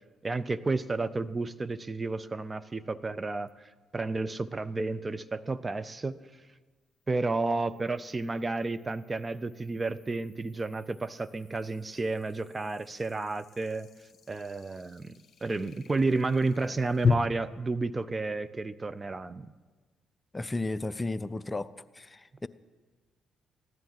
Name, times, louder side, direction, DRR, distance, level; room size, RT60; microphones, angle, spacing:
voice 1, 0.2-3.5 3.9-6.2 7.1-13.9 14.3-15.1 15.4-19.5, right 3 dB, 30° right, 0.6 m, -31 dB
sound 1, 3.5-3.6 7.0-17.1, left 8 dB, 50° left, 1.2 m, -39 dB
voice 2, 20.3-21.7 22.0-22.5, left 2 dB, 20° left, 0.5 m, -33 dB
15.5 x 10.5 x 7.7 m
hypercardioid pair, 50°, 0 cm